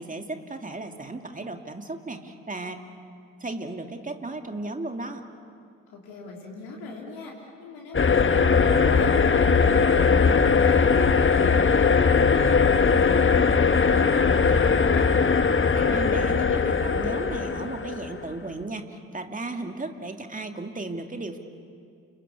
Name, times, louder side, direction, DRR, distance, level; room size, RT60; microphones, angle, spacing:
voice 1, 0.0-2.9 3.4-5.2 15.7-21.4, right 2 dB, 20° right, 5 dB, 2.6 m, -35 dB
voice 2, 5.9-15.1, left 3 dB, 70° left, -2 dB, 3.6 m, -41 dB
sound 1, 7.9-18.2, left 5 dB, 30° left, 1.5 m, -20 dB
29.5 x 21.0 x 8.5 m, 2.3 s
figure-of-eight pair, 40°, 40 cm